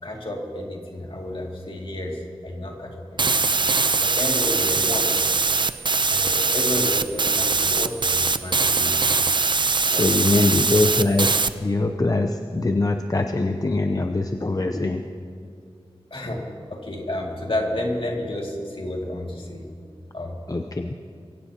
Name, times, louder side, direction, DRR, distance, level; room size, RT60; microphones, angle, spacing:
voice 1, 0.0-3.5 4.0-5.3 6.1-9.0 9.9-10.6 16.1-19.7 20.1-20.4, left 1 dB, 65° left, -1 dB, 2.4 m, -31 dB
sound 1, 3.2-11.5, right 4 dB, 50° right, 0.5 m, -22 dB
voice 2, 9.9-15.0 20.5-20.9, left 2 dB, 40° left, 5 dB, 0.6 m, -23 dB
24.0 x 16.5 x 2.9 m, 2.3 s
wide cardioid pair, 70°, 10 cm